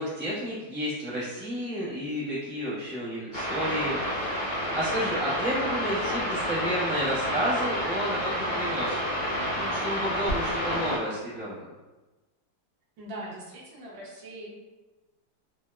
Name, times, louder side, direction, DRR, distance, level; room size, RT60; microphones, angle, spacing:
voice 1, 0.0-4.5 4.7-11.5, equal, 15° right, -10 dB, 0.4 m, -31 dB
sound 1, 3.3-11.0, equal, 60° left, 0.8 m, -29 dB
voice 2, 13.0-14.5, right 1 dB, 70° right, -4 dB, 1.3 m, -41 dB
3.4 x 2.1 x 2.2 m, 1.2 s
omnidirectional pair, 2.2 m